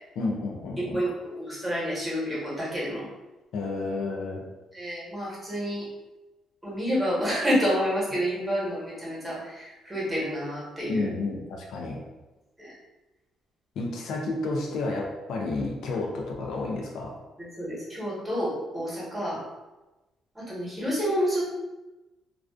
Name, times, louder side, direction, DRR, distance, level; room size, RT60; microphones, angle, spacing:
voice 1, 0.2-1.0 3.5-4.4 10.9-12.0 13.8-17.2, left 3 dB, 75° left, 0 dB, 0.4 m, -31 dB
voice 2, 0.8-3.1 4.7-5.9 6.6-11.1 12.6-12.7 17.4-19.4 20.3-21.4, equal, 15° right, -7 dB, 1.1 m, -29 dB
2.3 x 2.3 x 2.3 m, 1.1 s
cardioid pair, 95°, 0 cm